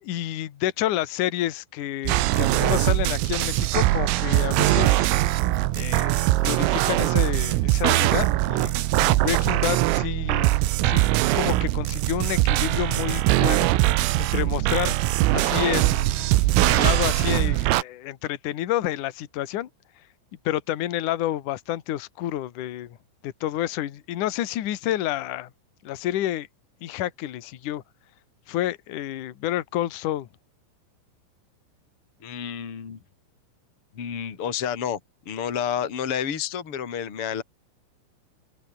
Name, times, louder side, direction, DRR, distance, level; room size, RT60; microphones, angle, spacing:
voice 1, 0.0-5.1 5.8-10.5 10.8-11.0 11.3-16.3 16.6-19.7 20.4-23.0 23.2-25.5 25.8-26.5 26.8-27.8 28.5-30.3, left 13 dB, 60° left, 2.1 m, -29 dB
sound 1, 2.1-17.8, right 17 dB, 80° right, 3.8 m, -22 dB
voice 2, 32.2-33.0 33.9-35.0 35.2-37.4, left 8 dB, 30° left, 3.2 m, -29 dB
omnidirectional pair, 6.0 m